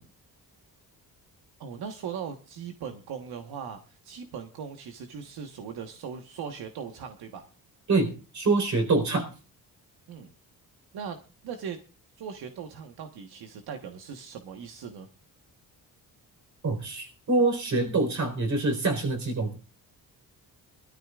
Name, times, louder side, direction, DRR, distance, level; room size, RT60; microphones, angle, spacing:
voice 1, 1.6-7.5 10.1-10.3 10.9-11.8 12.2-15.1, right 7 dB, 90° right, 1.4 m, -39 dB
voice 2, 7.9-9.3 16.6-19.6, right 3 dB, 50° right, 4.4 m, -25 dB
24.0 x 13.0 x 2.5 m
cardioid pair, 105°, 37 cm